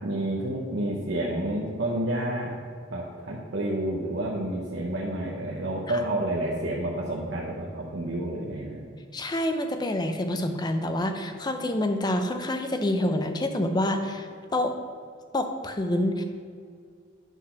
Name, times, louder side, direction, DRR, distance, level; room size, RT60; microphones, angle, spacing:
voice 1, 0.0-2.5 2.9-8.8, right 1 dB, 65° right, -3 dB, 1.0 m, -29 dB
voice 2, 9.1-14.7 15.3-16.2, left 1 dB, 20° left, 6 dB, 0.6 m, -27 dB
9.0 x 4.0 x 5.8 m, 2.2 s
head